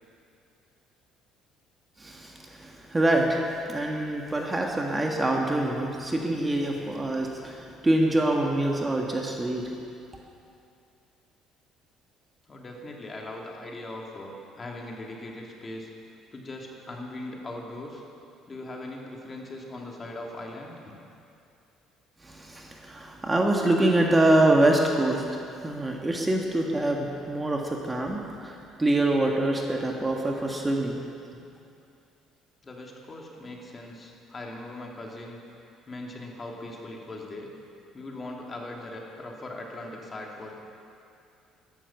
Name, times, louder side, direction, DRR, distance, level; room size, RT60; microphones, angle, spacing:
voice 1, 2.0-9.7 22.2-25.2 25.6-31.0, right 1 dB, 15° right, 0 dB, 1.5 m, -25 dB
voice 2, 12.5-15.9 16.3-18.0 18.5-20.9 31.3-31.4 32.6-35.4 35.9-37.5 37.9-40.5, left 2 dB, 30° left, -1 dB, 2.5 m, -40 dB
12.5 x 11.5 x 7.1 m, 2.5 s
cardioid pair, 95°, 0 cm